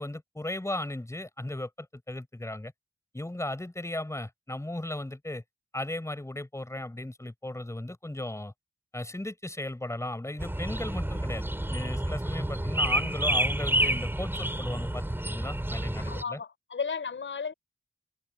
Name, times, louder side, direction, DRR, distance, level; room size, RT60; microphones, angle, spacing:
voice 1, 0.0-2.7 3.1-5.4 5.7-8.5 8.9-16.4, left 1 dB, 15° left, 7.1 m, -36 dB
sound 1, 10.4-16.2, right 1 dB, 10° right, 6.2 m, -29 dB
voice 2, 16.0-17.5, left 5 dB, 75° left, 5.5 m, -34 dB
wide cardioid pair, 115°, 20 cm